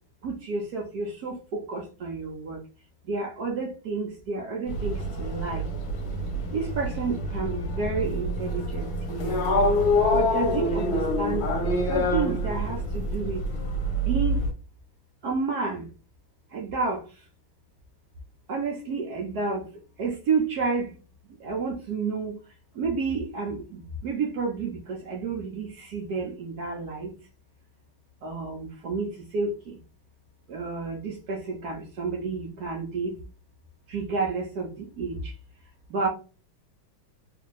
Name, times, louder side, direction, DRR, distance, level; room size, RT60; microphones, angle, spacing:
voice 1, 0.2-1.3 1.7-2.6 3.1-5.6 6.5-9.4 10.1-11.4 11.9-13.4 14.1-14.4 15.2-15.9 16.5-17.0 18.5-19.7 20.0-20.9 21.4-22.3 22.8-23.6 24.0-27.1 28.2-29.8 30.5-33.1 33.9-35.2 35.9-36.1, right 4 dB, 70° right, 0.9 m, -30 dB
sound 1, 4.7-14.5, left 1 dB, 55° left, 1.2 m, -26 dB
3.4 x 2.5 x 3.2 m
omnidirectional pair, 2.4 m